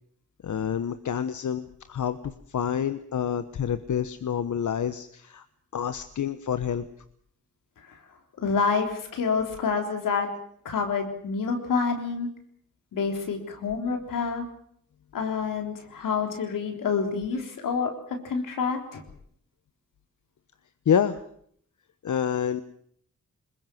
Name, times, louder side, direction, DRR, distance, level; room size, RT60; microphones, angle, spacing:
voice 1, 0.4-5.4 5.7-6.8 20.9-21.2 22.0-22.6, left 8 dB, 65° left, 12 dB, 1.1 m, -28 dB
voice 2, 8.4-10.3 10.6-12.3 12.9-14.4 15.1-17.9 18.2-19.0, left 5 dB, 85° left, 4 dB, 3.8 m, -27 dB
21.5 x 21.0 x 7.8 m, 0.67 s
cardioid pair, 50°, 31 cm